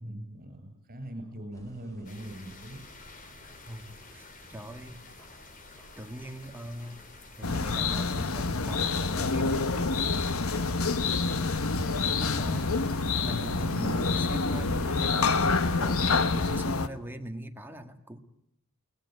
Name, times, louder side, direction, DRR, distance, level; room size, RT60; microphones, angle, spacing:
voice 1, 0.0-2.8, right 1 dB, 45° right, 8 dB, 7.9 m, -41 dB
sound 1, 1.5-10.8, equal, 15° left, 4.7 m, -54 dB
sound 2, 2.0-16.2, left 3 dB, 40° left, 3.1 m, -51 dB
voice 2, 3.6-5.0 6.0-7.1 7.4-10.1 12.0-12.7 13.2-18.2, right 1 dB, 10° right, 5 dB, 1.7 m, -41 dB
sound 3, 7.4-16.9, left 4 dB, 90° left, 1.1 m, -27 dB
22.0 x 19.5 x 9.6 m, 0.74 s
head